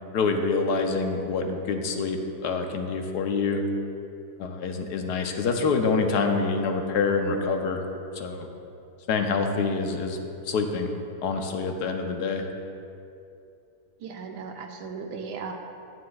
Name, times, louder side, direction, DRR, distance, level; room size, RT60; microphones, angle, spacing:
voice 1, 0.1-3.6 4.4-7.8 8.1-8.5 9.1-10.2 10.4-10.9 11.2-12.5, left 4 dB, 80° left, 4 dB, 1.3 m, -26 dB
voice 2, 14.0-15.5, right 5 dB, 85° right, 4 dB, 1.3 m, -36 dB
11.0 x 9.5 x 2.3 m, 2.6 s
omnidirectional pair, 1.7 m